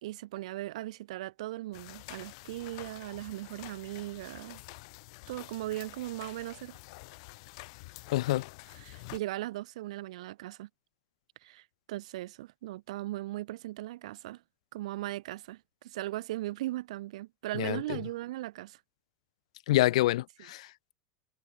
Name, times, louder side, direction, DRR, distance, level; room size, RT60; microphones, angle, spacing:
voice 1, 0.0-4.6 5.3-6.8 8.3-8.4 8.7-10.7 11.4-14.4 14.7-18.8, right 16 dB, 85° right, 2.9 m, -38 dB
sound 1, 1.7-9.2, left 25 dB, 65° left, 3.4 m, -48 dB
voice 2, 8.1-8.5 17.5-18.0 19.7-20.9, left 16 dB, 85° left, 0.4 m, -27 dB
supercardioid pair, 140°, 3 cm